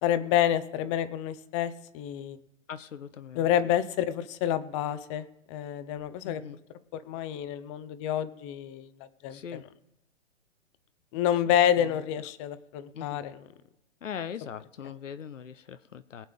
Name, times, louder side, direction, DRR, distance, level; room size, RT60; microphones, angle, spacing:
voice 1, 0.0-2.4 3.4-6.4 6.9-8.9 9.2-9.6 11.1-13.4, left 10 dB, 25° left, 14 dB, 0.7 m, -28 dB
voice 2, 2.7-3.5 6.2-6.6 9.3-9.6 11.8-12.3 12.9-13.3 14.0-16.3, left 8 dB, 85° left, 12 dB, 0.7 m, -41 dB
22.5 x 7.6 x 3.5 m, 0.92 s
hypercardioid pair, 130°, 37 cm